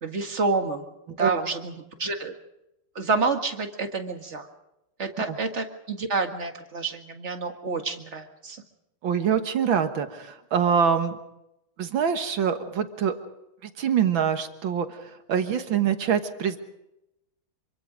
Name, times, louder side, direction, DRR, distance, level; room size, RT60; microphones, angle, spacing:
voice 1, 0.0-0.9 1.2-1.7 2.0-2.3 3.0-4.5 5.0-8.6, right 4 dB, 35° right, 5 dB, 1.9 m, -28 dB
voice 2, 9.0-11.2 11.8-13.1 13.6-15.0 15.3-16.6, right 7 dB, 65° right, 8 dB, 2.1 m, -24 dB
26.5 x 24.5 x 5.1 m, 0.88 s
omnidirectional pair, 2.4 m